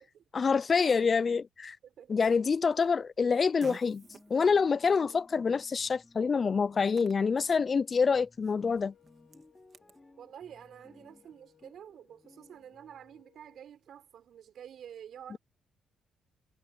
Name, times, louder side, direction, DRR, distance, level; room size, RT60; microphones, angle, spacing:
voice 1, 0.3-1.8 2.1-4.0 4.3-8.9 15.3-15.4, left 5 dB, 40° left, 0.3 m, -26 dB
voice 2, 1.8-2.2 2.8-2.9 5.0-5.3 8.1-8.3 10.2-15.4, right 9 dB, 65° right, 5.8 m, -50 dB
Fart, 2.2-10.0, right 5 dB, 45° right, 2.0 m, -57 dB
sound 1, 4.0-13.2, left 2 dB, 15° left, 4.4 m, -60 dB
Wind instrument woodwind instrument, 8.5-13.7, left 12 dB, 85° left, 4.7 m, -67 dB
cardioid pair, 90°, 0 cm